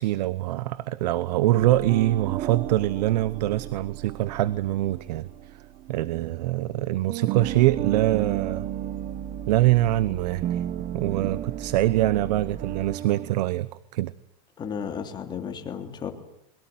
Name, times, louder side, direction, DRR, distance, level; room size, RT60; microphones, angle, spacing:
voice 1, 0.0-5.6 5.9-8.7 9.5-10.6 10.9-14.1, right 15 dB, 80° right, 0.9 m, -24 dB
sound 1, 1.5-6.8 7.1-13.4, right 11 dB, 35° right, 1.2 m, -34 dB
voice 2, 14.6-16.1, left 7 dB, 20° left, 3.1 m, -33 dB
22.5 x 22.5 x 9.5 m
supercardioid pair, 160°, 21 cm